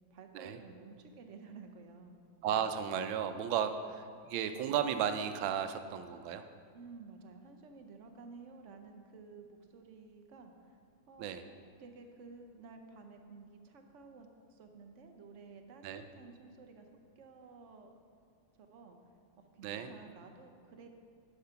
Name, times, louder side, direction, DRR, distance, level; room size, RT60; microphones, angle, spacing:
voice 1, 0.1-2.2 6.7-10.8 11.1-11.3 11.8-16.9 17.2-17.9 18.6-19.0 19.5-20.9, right 4 dB, 65° right, 5 dB, 0.7 m, -53 dB
voice 2, 2.4-6.4 11.2-11.4 15.8-16.0 19.6-19.9, right 8 dB, 85° right, 9 dB, 1.4 m, -34 dB
10.0 x 5.8 x 5.7 m, 2.2 s
omnidirectional pair, 2.1 m